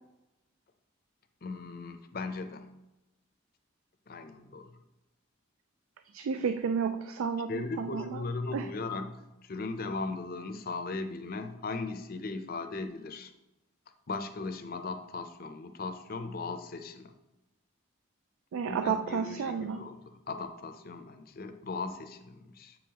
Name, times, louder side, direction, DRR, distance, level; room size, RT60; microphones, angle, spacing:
voice 1, 1.4-2.7 4.1-4.7 7.5-13.3 14.1-17.1 18.7-22.8, left 3 dB, 45° left, 7 dB, 0.5 m, -38 dB
voice 2, 6.1-8.0 8.5-8.6 18.5-19.8, right 6 dB, 85° right, 9 dB, 0.3 m, -31 dB
7.8 x 5.5 x 2.9 m, 0.98 s
head